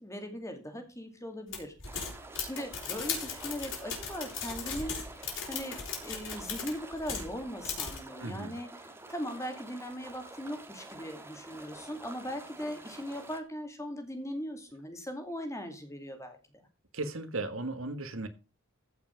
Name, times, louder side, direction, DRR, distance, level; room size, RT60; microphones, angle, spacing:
voice 1, 0.0-1.7 2.4-8.7 9.1-16.6, equal, 15° left, 2.4 m, -39 dB
sound 1, 1.5-7.3 7.6-8.0, left 6 dB, 65° left, 4.2 m, -37 dB
sound 2, 1.8-13.4, right 2 dB, 10° right, 1.6 m, -48 dB
voice 2, 8.2-8.6 16.9-18.3, right 2 dB, 70° right, 1.7 m, -36 dB
15.0 x 5.9 x 5.2 m
head